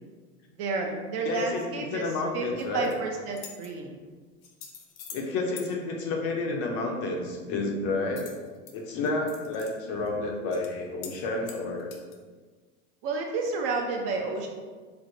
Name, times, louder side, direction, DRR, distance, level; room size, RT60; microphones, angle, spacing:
voice 1, 0.5-2.1 2.3-2.5 2.7-4.0 13.0-14.5, right 4 dB, 40° right, 2 dB, 0.4 m, -30 dB
voice 2, 1.3-2.9 5.1-8.3 8.7-11.9, left 2 dB, 35° left, 1 dB, 0.5 m, -30 dB
sound 1, 2.6-2.9 3.3-3.7 4.4-5.3 5.6-5.7 8.2-8.7 9.1-9.7 10.1-10.2 10.5-10.7 11.0-11.2 11.4-12.2, left 7 dB, 75° left, 0.7 m, -44 dB
4.4 x 2.0 x 2.5 m, 1.4 s
hypercardioid pair, 120°, 41 cm